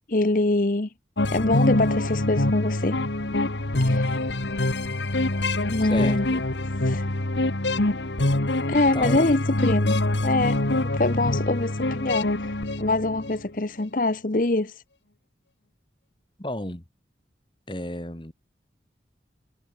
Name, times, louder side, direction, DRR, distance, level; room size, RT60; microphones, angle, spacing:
voice 1, 0.1-0.9 1.3-3.0 3.8-4.3 5.7-6.3 6.8-7.1 8.7-10.6 10.8-14.8, left 2 dB, 50° left, 1.0 m, -24 dB
sound 1, 1.2-13.5, left 2 dB, 90° left, 1.7 m, -25 dB
voice 2, 5.8-6.5 8.7-9.3 16.4-16.8 17.7-18.3, left 1 dB, 25° left, 1.8 m, -32 dB
head